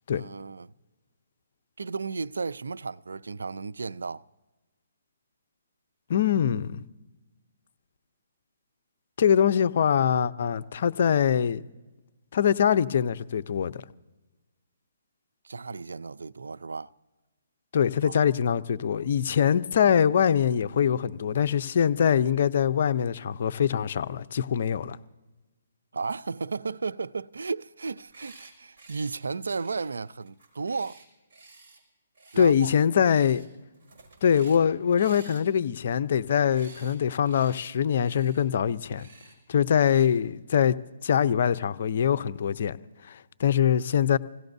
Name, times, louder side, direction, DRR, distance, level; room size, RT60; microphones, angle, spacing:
voice 1, 0.1-0.7 1.8-4.2 15.4-16.9 18.0-18.3 25.9-31.0 32.3-32.7, right 4 dB, 85° right, 0.4 m, -34 dB
voice 2, 6.1-6.8 9.2-11.6 12.3-13.8 17.7-25.0 32.4-33.4 34.2-39.1 39.5-40.8 41.0-42.8 43.1-44.2, left 8 dB, 55° left, 0.6 m, -23 dB
sound 1, 27.9-28.5 28.8-29.2 29.5-31.8 32.1-32.7 33.0-33.5 33.7-34.6 35.0-37.0 37.2-37.7 38.0-38.4 38.9-39.3 39.8-40.1, right 3 dB, 40° right, 5.7 m, -52 dB
26.5 x 16.5 x 2.7 m
hypercardioid pair, 150°, 0 cm